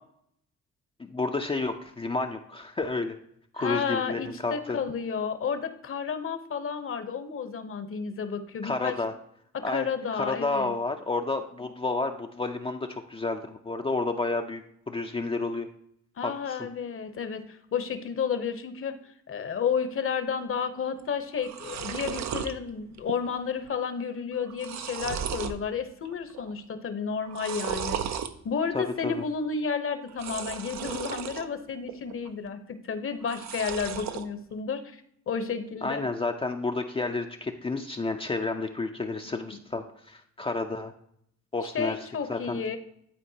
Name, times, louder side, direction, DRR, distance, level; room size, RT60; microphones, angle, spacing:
voice 1, 1.0-3.1 3.5-4.8 8.6-9.1 9.6-9.9 10.1-14.6 14.9-15.7 16.2-16.6 28.7-29.2 35.8-40.9 41.5-42.0 42.3-42.6, left 3 dB, 20° left, 4 dB, 0.5 m, -30 dB
voice 2, 3.5-8.9 9.5-10.7 16.2-19.0 19.3-28.2 28.4-35.0 35.3-36.0 39.5-39.6 41.7-42.8, left 6 dB, 45° left, 9 dB, 0.9 m, -31 dB
sound 1, 21.0-21.1 21.3-22.5 23.0-23.4 23.6-23.7 24.3-25.6 26.0-26.5 27.2-28.3 30.1-31.5 31.9-32.5 33.2-34.3, right 8 dB, 65° right, 0.6 m, -35 dB
11.5 x 4.3 x 2.8 m, 0.71 s
cardioid pair, 90°, 30 cm